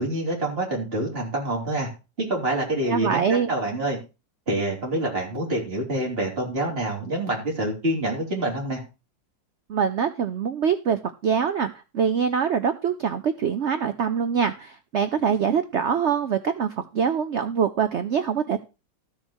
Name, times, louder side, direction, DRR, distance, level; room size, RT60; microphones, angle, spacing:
voice 1, 0.0-1.9 2.2-4.0 4.5-8.8, right 1 dB, 30° right, -2 dB, 3.8 m, -26 dB
voice 2, 2.9-3.5 9.7-18.6, right 7 dB, 80° right, 10 dB, 0.6 m, -24 dB
13.5 x 6.6 x 4.4 m, 0.29 s
omnidirectional pair, 2.0 m